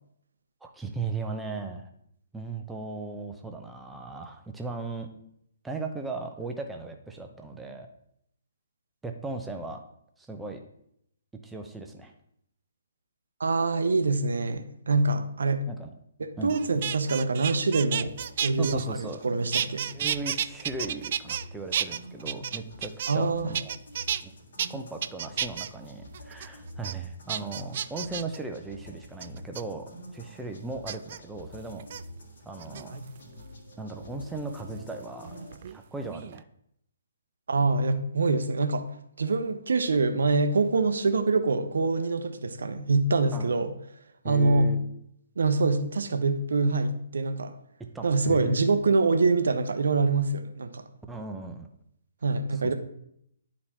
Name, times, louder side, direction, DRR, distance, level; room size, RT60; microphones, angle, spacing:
voice 1, 0.6-1.9 2.3-5.1 5.6-7.9 9.0-9.8 10.2-10.6 11.4-12.1 15.7-15.9 16.4-16.5 18.6-19.2 19.8-23.7 24.2-24.3 24.7-31.9 32.5-32.9 33.8-35.3 35.6-36.4 43.3-43.5 44.2-44.8 47.8-48.6 51.1-51.7, right 3 dB, 5° right, 3 dB, 0.8 m, -37 dB
voice 2, 13.4-15.7 16.2-18.1 18.4-19.9 23.1-23.5 37.5-38.9 39.2-43.7 44.2-44.7 45.4-47.5 48.0-50.8 52.2-52.7, right 3 dB, 65° right, 8 dB, 0.8 m, -25 dB
sound 1, 16.5-19.2 19.5-21.4 21.7-23.3 23.5-24.2 24.6-24.7 25.0-25.7 26.1-26.5 26.8-26.9 27.3-28.4 29.2-29.6 30.9-31.2 31.8-32.0 32.6-33.2 34.6-35.8 36.0-36.4, right 9 dB, 45° right, 0.3 m, -32 dB
sound 2, 17.9-35.6, equal, 65° left, 1.8 m, -47 dB
11.0 x 4.2 x 3.0 m, 0.72 s
figure-of-eight pair, 130°, 0 cm